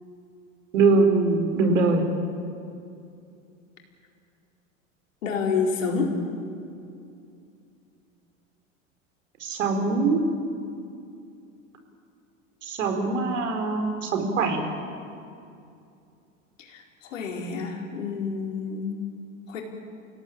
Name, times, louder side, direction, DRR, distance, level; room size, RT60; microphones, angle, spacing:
voice 1, 0.7-2.0 9.4-10.2 12.6-14.6, right 3 dB, 70° right, 4 dB, 4.3 m, -22 dB
voice 2, 5.2-6.2 16.6-19.0 19.5-19.6, left 5 dB, 70° left, 1 dB, 4.5 m, -28 dB
29.5 x 17.0 x 8.9 m, 2.5 s
figure-of-eight pair, 85°, 39 cm